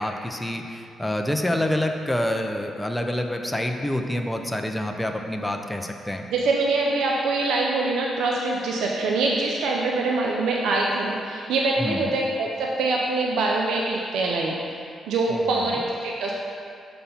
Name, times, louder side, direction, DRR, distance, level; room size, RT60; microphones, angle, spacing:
voice 1, 0.0-6.2 11.8-12.1 15.3-15.8, left 1 dB, 5° left, 3 dB, 0.5 m, -27 dB
voice 2, 6.3-14.6 15.1-16.3, right 3 dB, 85° right, -1 dB, 0.5 m, -24 dB
5.6 x 4.2 x 5.5 m, 2.4 s
cardioid pair, 75°, 0 cm